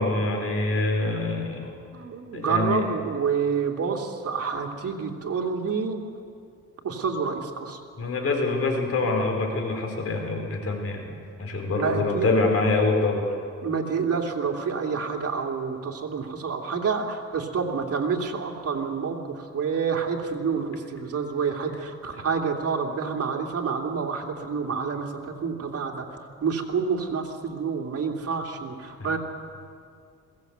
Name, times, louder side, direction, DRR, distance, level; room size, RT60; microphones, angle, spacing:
voice 1, 0.0-1.7 2.3-2.8 8.0-11.1 11.4-13.4 29.0-29.2, left 3 dB, 50° left, 3 dB, 4.5 m, -25 dB
voice 2, 1.9-6.0 6.8-7.8 11.7-12.3 13.6-26.1 26.4-29.2, right 5 dB, 50° right, 0 dB, 2.8 m, -28 dB
21.5 x 17.0 x 8.1 m, 2.3 s
cardioid pair, 90°, 30 cm